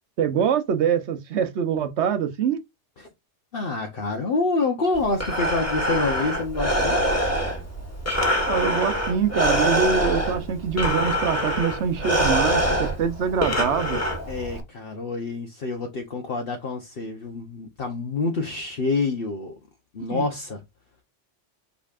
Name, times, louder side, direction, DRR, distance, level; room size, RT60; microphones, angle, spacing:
voice 1, 0.2-2.6 8.5-14.0 20.1-20.3, right 7 dB, 75° right, 1.1 m, -24 dB
voice 2, 3.5-7.1 14.3-19.6 19.9-20.6, left 3 dB, 55° left, 1.2 m, -27 dB
Breathing, 4.9-14.6, equal, 15° left, 1.5 m, -24 dB
5.1 x 4.2 x 2.5 m
omnidirectional pair, 1.2 m